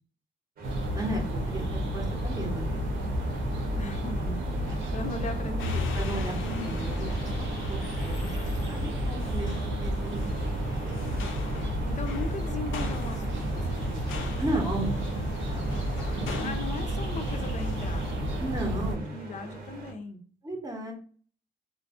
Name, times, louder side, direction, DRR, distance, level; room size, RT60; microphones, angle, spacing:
sound 1, 0.6-19.9, right 2 dB, 50° right, 0.9 m, -44 dB
sound 2, 0.6-19.0, right 1 dB, 75° right, 0.6 m, -31 dB
voice 1, 0.9-2.9 5.9-7.3 7.7-10.3 14.4-15.0 15.5-16.5 18.4-19.1 20.4-20.9, right 1 dB, 20° right, 1 dB, 0.8 m, -35 dB
voice 2, 3.7-6.0 11.8-14.4 16.4-20.2, left 3 dB, 40° left, 7 dB, 0.5 m, -39 dB
sound 3, 5.6-18.1, left 5 dB, 85° left, 0.5 m, -41 dB
2.5 x 2.4 x 2.4 m, 0.44 s
cardioid pair, 90°, 20 cm